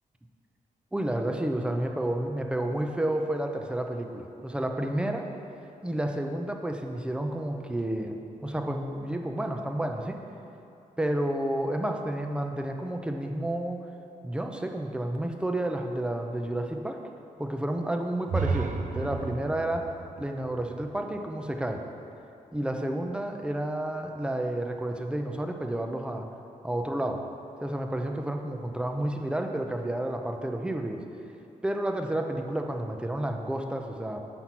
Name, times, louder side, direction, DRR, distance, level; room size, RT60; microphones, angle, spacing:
voice 1, 0.9-5.3 5.8-10.2 11.0-13.8 14.2-17.0 17.4-19.9 20.2-21.8 22.5-26.3 26.6-27.2 27.6-31.0 31.6-34.2, right 1 dB, 5° right, 4 dB, 0.5 m, -30 dB
sound 1, 18.3-22.1, right 4 dB, 70° right, 0.5 m, -33 dB
6.0 x 5.3 x 5.8 m, 2.8 s
wide cardioid pair, 120°, 14 cm